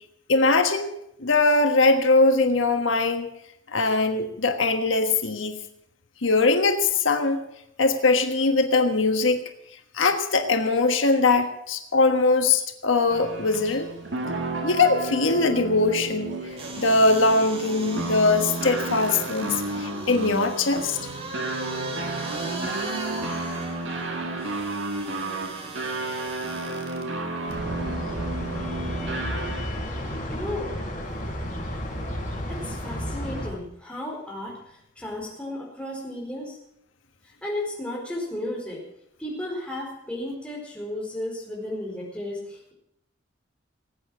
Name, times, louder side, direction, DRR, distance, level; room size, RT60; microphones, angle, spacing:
voice 1, 0.3-0.9 1.2-3.3 3.7-5.5 6.2-7.4 7.8-9.4 9.9-13.9 14.6-16.4 16.8-21.0, left 3 dB, 90° left, 6 dB, 1.4 m, -21 dB
sound 1, 13.1-29.8, right 2 dB, 70° right, 2.2 m, -32 dB
sound 2, 16.5-27.0 27.5-27.6, right 2 dB, 30° right, 2.6 m, -37 dB
sound 3, 27.5-33.5, equal, 40° left, 5.8 m, -32 dB
voice 2, 30.3-30.8 32.5-36.6 37.4-38.8 39.2-42.7, left 1 dB, 5° left, -2 dB, 4.5 m, -34 dB
19.0 x 8.7 x 7.4 m, 0.76 s
head